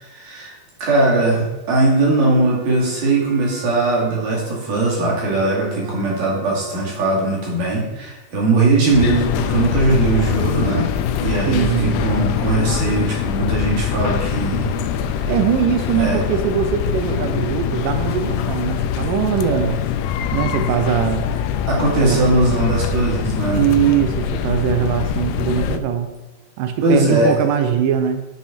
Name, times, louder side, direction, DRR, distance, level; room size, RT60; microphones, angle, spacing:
voice 1, 0.1-10.9 11.2-15.2 16.0-16.2 21.7-23.6 26.8-27.3, right 2 dB, 50° right, -4 dB, 3.4 m, -19 dB
Wind instrument woodwind instrument, 2.2-7.1, right 4 dB, 70° right, 2.2 m, -39 dB
sound 1, 8.9-25.8, left 8 dB, 85° left, 2.7 m, -23 dB
sound 2, 8.9-15.1 15.4-15.5, left 3 dB, 55° left, 1.6 m, -39 dB
voice 2, 11.5-12.1 15.3-19.9 20.3-21.3 22.0-22.2 23.5-26.1 26.6-28.3, right 9 dB, 90° right, 7 dB, 1.9 m, -21 dB
10.5 x 5.5 x 4.3 m, 1.1 s
omnidirectional pair, 4.7 m